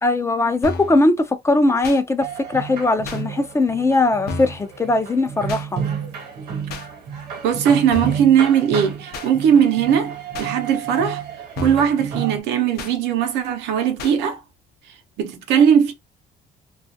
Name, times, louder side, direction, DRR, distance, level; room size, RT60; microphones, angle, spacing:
voice 1, 0.0-5.8, left 2 dB, 15° left, 0.4 m, -19 dB
sound 1, 0.6-1.0 1.8-2.0 3.1-3.2 4.3-4.6 5.5-5.7 6.7-6.9 7.9-8.3 9.1-9.3 10.3-10.5 11.6-11.9 12.8-13.0 14.0-14.2, left 4 dB, 70° left, 0.6 m, -31 dB
sound 2, 2.2-12.4, right 7 dB, 70° right, 1.1 m, -31 dB
voice 2, 7.4-11.2 11.6-14.4 15.2-15.9, right 8 dB, 90° right, 0.7 m, -19 dB
2.4 x 2.4 x 2.5 m
cardioid pair, 110°, 17 cm